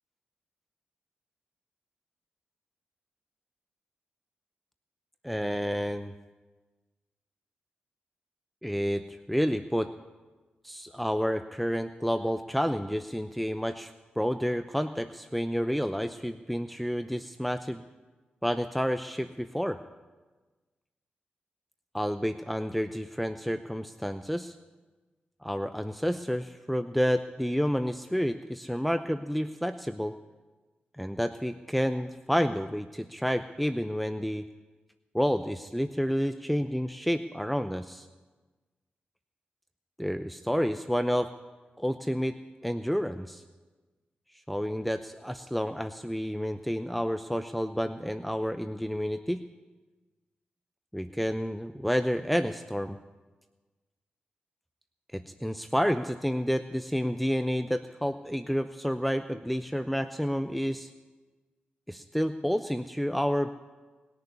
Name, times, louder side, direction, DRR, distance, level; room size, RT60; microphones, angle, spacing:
voice 1, 5.2-6.1 8.6-9.9 10.6-17.8 18.4-19.8 21.9-24.6 25.4-30.1 30.9-34.4 35.1-38.1 40.0-41.3 41.8-42.4 42.6-43.4 44.5-49.4 50.9-53.0 55.1-60.9 61.9-63.5, equal, ahead, 9 dB, 0.6 m, -30 dB
20.0 x 6.8 x 9.5 m, 1.3 s
supercardioid pair, 45°, 4 cm